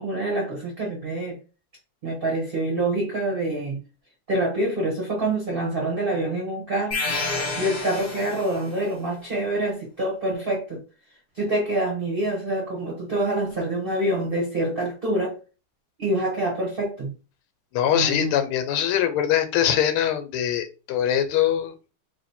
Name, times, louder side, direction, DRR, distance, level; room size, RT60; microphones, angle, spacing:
voice 1, 0.0-1.4 2.0-3.8 4.3-7.0 7.6-10.8 11.3-15.4 16.0-17.1 17.9-18.3, right 1 dB, 35° right, 1.0 m, -26 dB
sound 1, 6.9-8.8, left 3 dB, 25° left, 0.9 m, -29 dB
voice 2, 17.7-21.9, left 10 dB, 80° left, 1.5 m, -23 dB
3.1 x 3.1 x 4.2 m
omnidirectional pair, 2.4 m